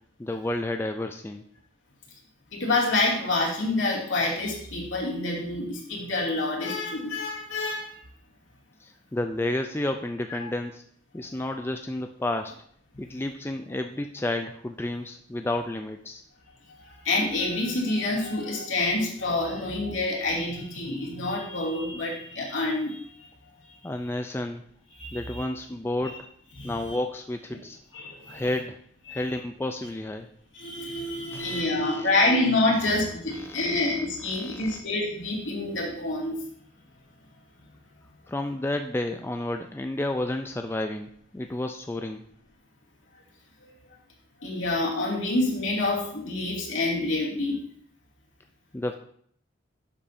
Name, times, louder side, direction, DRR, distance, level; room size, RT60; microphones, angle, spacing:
voice 1, 0.2-1.4 8.8-10.8 11.1-12.5 13.0-16.2 23.8-24.6 25.1-26.3 26.6-27.8 28.3-28.8 29.1-30.3 31.3-32.0 33.4-33.8 34.3-34.8 38.3-42.2 48.7-48.9, left 1 dB, 10° left, 5 dB, 0.3 m, -31 dB
voice 2, 2.5-8.0 10.4-10.5 16.8-23.2 25.0-25.4 26.6-27.0 27.9-28.5 29.1-29.2 30.5-36.4 44.4-47.7, left 2 dB, 75° left, -3 dB, 2.5 m, -27 dB
11.5 x 7.2 x 2.7 m, 0.63 s
head